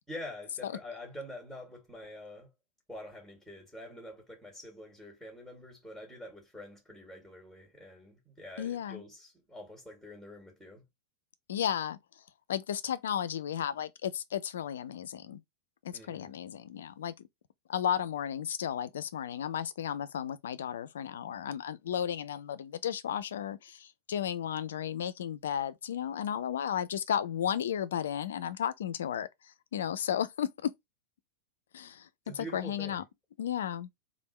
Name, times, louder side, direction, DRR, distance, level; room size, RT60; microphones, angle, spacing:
voice 1, 0.1-2.5 2.9-10.8 15.9-16.3 32.2-33.0, left 1 dB, 5° right, 1.8 m, -46 dB
voice 2, 8.6-9.0 11.5-12.0 12.5-15.4 15.8-17.3 17.7-30.7 31.7-32.1 32.4-33.0 33.4-33.9, left 9 dB, 60° left, 0.4 m, -34 dB
3.5 x 2.5 x 4.0 m
figure-of-eight pair, 90°, 0 cm